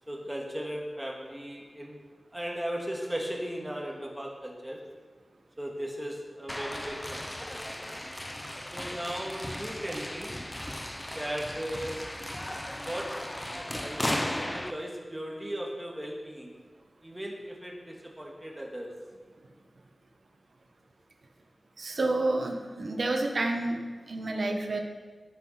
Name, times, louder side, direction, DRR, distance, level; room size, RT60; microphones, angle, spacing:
voice 1, 0.1-2.0 2.3-4.8 5.6-7.5 8.7-10.3 11.1-12.0 12.9-13.3 13.5-16.6 17.0-18.9, equal, 10° right, -1 dB, 1.9 m, -37 dB
sound 1, 6.5-14.7, left 1 dB, 15° left, 0.6 m, -36 dB
voice 2, 21.8-23.8 24.1-24.8, right 2 dB, 65° right, 3 dB, 1.2 m, -29 dB
16.0 x 5.8 x 4.3 m, 1.4 s
wide cardioid pair, 105°, 0 cm